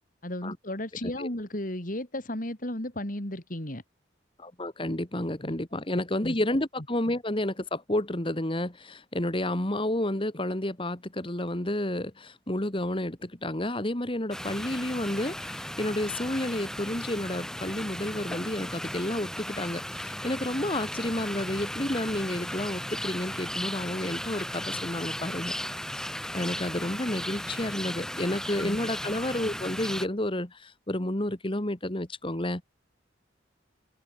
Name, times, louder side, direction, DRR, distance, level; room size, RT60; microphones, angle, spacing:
voice 1, 0.2-3.8 5.4-5.6 5.9-6.4 28.6-28.8, left 1 dB, 45° left, 3.6 m, -34 dB
voice 2, 4.4-25.5 26.3-32.6, left 1 dB, 30° left, 2.2 m, -31 dB
sound 1, 14.3-30.1, left 1 dB, 5° left, 4.4 m, -36 dB
open air
head